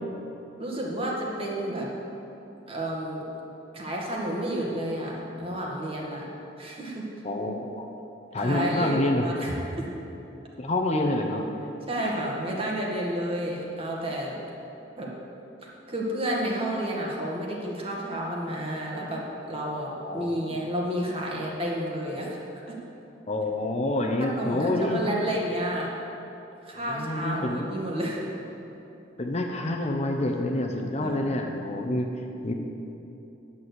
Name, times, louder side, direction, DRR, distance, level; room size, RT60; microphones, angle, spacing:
voice 1, 0.6-1.9 2.7-3.2 3.7-6.3 6.6-7.0 8.4-9.9 11.9-14.4 15.0-15.1 15.9-19.2 19.5-22.4 22.7-22.8 24.0-25.9 26.6-28.2 31.0-31.6, right 1 dB, 30° right, -3 dB, 1.9 m, -31 dB
voice 2, 7.2-7.8 8.3-9.2 10.6-11.4 20.0-20.6 23.3-25.0 26.9-27.7 29.2-32.1 32.4-32.5, left 1 dB, 35° left, 2 dB, 0.9 m, -27 dB
10.5 x 7.1 x 8.2 m, 2.9 s
head